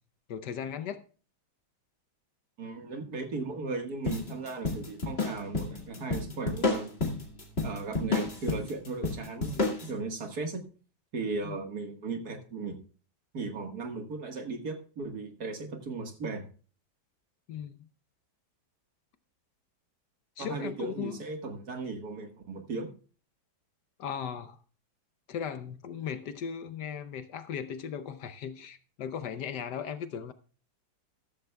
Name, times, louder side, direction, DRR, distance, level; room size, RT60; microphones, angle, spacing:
voice 1, 0.3-1.0 11.4-11.6 17.5-17.9 20.4-21.2 24.0-24.6 25.3-30.3, left 8 dB, 65° left, 1.2 m, -37 dB
voice 2, 2.6-6.9 7.6-10.6 11.1-12.7 13.3-16.4 20.4-22.9, right 3 dB, 50° right, 2.0 m, -36 dB
sound 1, 4.1-9.9, left 3 dB, 30° left, 2.1 m, -31 dB
14.0 x 13.0 x 2.3 m
omnidirectional pair, 2.2 m